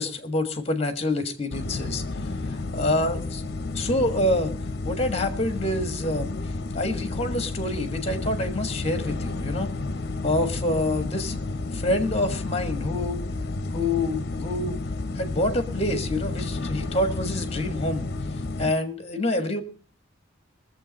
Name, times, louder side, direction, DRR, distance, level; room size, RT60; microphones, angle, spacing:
voice 1, 0.0-2.0 2.7-3.4 3.7-4.5 4.8-6.3 6.7-9.7 10.2-11.3 11.7-13.2 13.7-14.8 15.1-18.1 18.6-19.6, left 1 dB, 35° left, 8 dB, 1.5 m, -27 dB
sound 1, 1.5-18.7, left 2 dB, 60° left, 0.8 m, -31 dB
20.0 x 7.5 x 5.2 m, 0.39 s
head